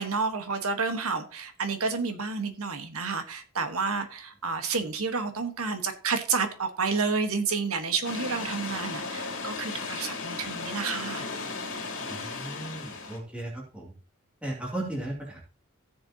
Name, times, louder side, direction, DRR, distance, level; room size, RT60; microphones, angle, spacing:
voice 1, 0.0-11.2, right 4 dB, 75° right, 1.4 m, -30 dB
Chantier-Amb, 8.0-13.2, left 4 dB, 65° left, 3.1 m, -35 dB
voice 2, 12.1-13.9 14.4-15.5, right 1 dB, 5° right, 2.6 m, -36 dB
15.5 x 6.9 x 2.9 m
head